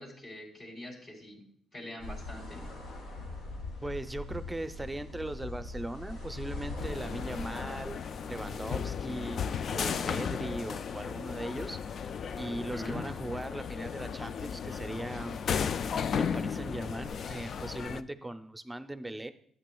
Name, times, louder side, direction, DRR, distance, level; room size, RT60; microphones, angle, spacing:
voice 1, 0.0-1.4 1.7-2.7 12.6-13.0, left 1 dB, 40° left, 0 dB, 3.3 m, -43 dB
sound 1, 2.0-8.6, left 2 dB, 85° left, 2.2 m, -41 dB
voice 2, 3.8-8.0 8.3-9.4 9.7-12.0 12.3-15.4 16.1-19.3, right 1 dB, 10° right, 10 dB, 0.6 m, -39 dB
sound 2, 6.8-18.0, left 7 dB, 55° left, 0.3 m, -35 dB
12.5 x 8.3 x 2.3 m, 0.62 s
cardioid pair, 90°, 0 cm